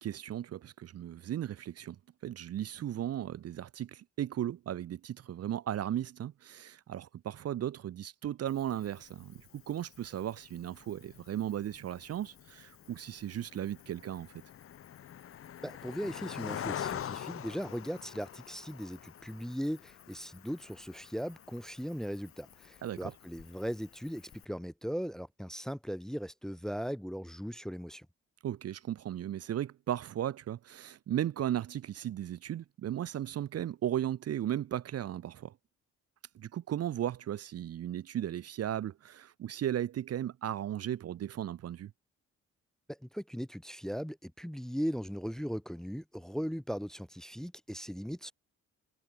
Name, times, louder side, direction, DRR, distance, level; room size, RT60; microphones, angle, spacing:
voice 1, 0.0-2.0 2.2-14.3 22.8-23.1 28.4-35.5 36.3-41.9, right 11 dB, 55° right, 0.8 m, -36 dB
Cricket, 8.5-24.5, left 10 dB, 45° left, 0.8 m, -46 dB
voice 2, 15.6-28.1 42.9-48.3, equal, ahead, 0.9 m, -38 dB
cardioid pair, 90°, 30 cm